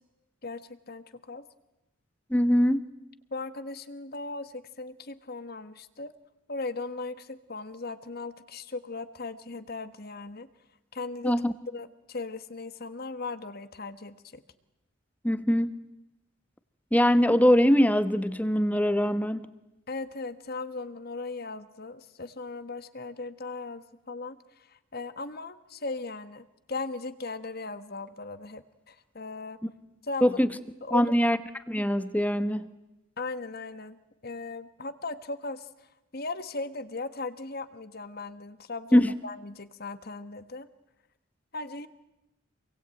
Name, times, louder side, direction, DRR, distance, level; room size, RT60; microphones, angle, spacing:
voice 1, 0.4-1.4 3.3-6.1 6.5-10.5 10.9-11.3 11.7-14.4 19.9-29.6 30.0-30.4 30.8-31.1 33.2-34.0 34.2-35.7 36.1-40.7 41.5-41.9, left 3 dB, 50° left, 12 dB, 1.4 m, -38 dB
voice 2, 2.3-2.8 11.2-11.5 15.2-15.7 16.9-19.5 30.2-30.5 30.9-31.4 31.7-32.7 38.9-39.1, equal, 5° left, 13 dB, 1.0 m, -22 dB
27.0 x 22.5 x 9.0 m, 0.96 s
head